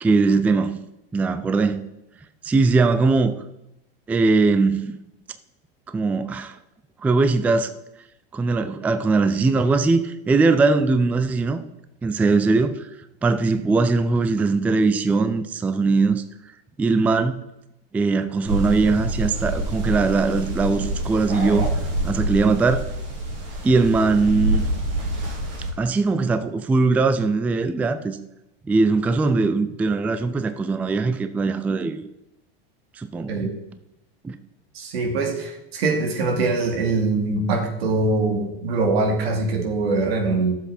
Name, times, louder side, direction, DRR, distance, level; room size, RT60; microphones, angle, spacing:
voice 1, 0.0-0.8 1.1-1.8 2.4-3.3 4.1-5.0 5.9-6.6 7.0-7.7 8.3-11.6 12.0-12.9 13.2-16.2 16.8-17.4 17.9-21.7 22.0-22.8 23.6-24.6 25.8-28.2 28.7-32.0 33.0-33.5 34.2-34.4, right 3 dB, 5° right, 10 dB, 0.3 m, -20 dB
sound 1, 18.5-25.7, right 1 dB, 40° right, 2.8 m, -26 dB
voice 2, 34.7-40.6, right 3 dB, 90° right, 3 dB, 2.5 m, -23 dB
11.5 x 7.4 x 4.2 m, 0.86 s
supercardioid pair, 140°, 30 cm